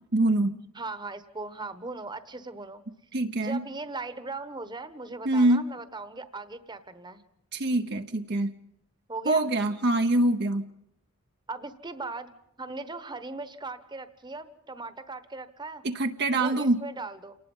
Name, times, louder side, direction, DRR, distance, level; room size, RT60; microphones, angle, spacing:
voice 1, 0.1-0.5 3.1-3.6 5.2-5.6 7.5-8.5 9.3-10.6 15.8-16.8, right 2 dB, 50° right, 6 dB, 0.8 m, -24 dB
voice 2, 0.7-2.8 3.4-7.2 9.1-9.5 11.5-12.3 12.6-15.8 16.3-17.4, right 3 dB, 20° right, 11 dB, 1.1 m, -38 dB
28.0 x 19.0 x 5.5 m, 0.80 s
head